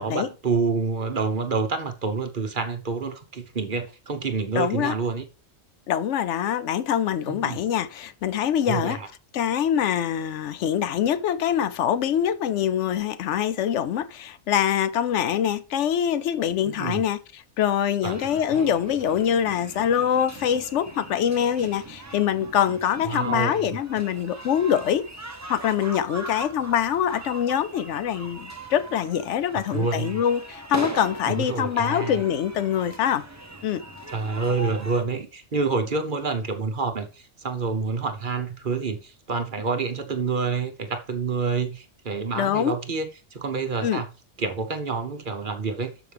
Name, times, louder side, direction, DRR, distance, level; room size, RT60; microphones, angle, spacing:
voice 1, 0.0-5.2 7.2-7.6 8.6-9.1 16.6-17.0 18.0-18.2 18.5-18.7 23.0-23.7 29.7-30.2 31.3-32.2 34.1-44.1 44.4-46.1, right 4 dB, 45° right, 1.1 m, -28 dB
voice 2, 4.6-4.9 5.9-9.0 9.3-25.1 25.5-33.2 33.6-33.8 42.3-42.8 43.8-44.0, left 9 dB, 75° left, 0.9 m, -24 dB
sound 1, 18.1-35.0, right 1 dB, 15° right, 0.9 m, -40 dB
12.0 x 5.2 x 3.4 m
omnidirectional pair, 1.3 m